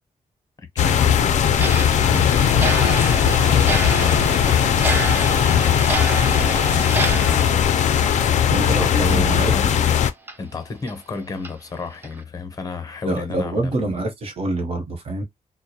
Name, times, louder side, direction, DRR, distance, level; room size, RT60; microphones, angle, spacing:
sound 1, 0.8-10.1, left 8 dB, 60° left, 0.4 m, -18 dB
voice 1, 1.5-1.8 2.5-5.3 6.0-7.6 8.0-9.9 10.4-14.0, left 4 dB, 25° left, 0.7 m, -33 dB
Clock, 1.6-8.8 9.1-9.2 9.7-9.8 10.3-10.4 10.9-11.0 11.4-11.5 12.0-12.2, right 3 dB, 15° right, 0.5 m, -29 dB
voice 2, 2.1-2.5 8.5-9.5 13.1-15.2, right 2 dB, 45° right, 0.8 m, -25 dB
2.3 x 2.0 x 2.8 m
cardioid pair, 125°, 13 cm